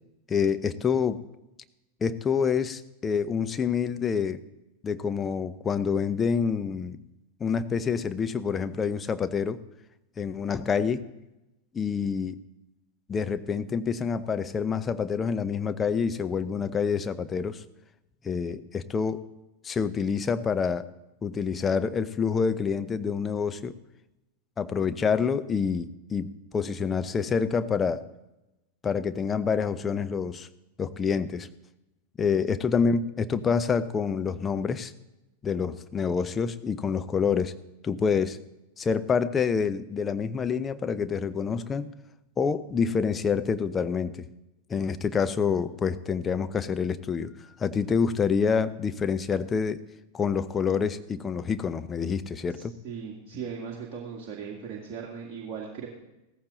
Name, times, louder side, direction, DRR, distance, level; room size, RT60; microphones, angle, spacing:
voice 1, 0.3-1.2 2.0-4.4 4.8-7.0 7.4-9.6 10.2-11.0 11.7-12.4 13.1-17.6 18.2-19.2 19.6-20.9 21.2-23.7 24.6-28.0 28.8-30.5 30.8-31.5 32.2-34.9 35.4-37.5 37.8-38.4 38.8-41.9 42.4-44.3 44.7-47.3 47.6-49.8 50.1-52.7, left 6 dB, 20° left, 11 dB, 0.7 m, -27 dB
voice 2, 52.5-55.9, right 6 dB, 35° right, -3 dB, 2.3 m, -38 dB
16.5 x 14.5 x 4.0 m, 0.96 s
figure-of-eight pair, 90°, 0 cm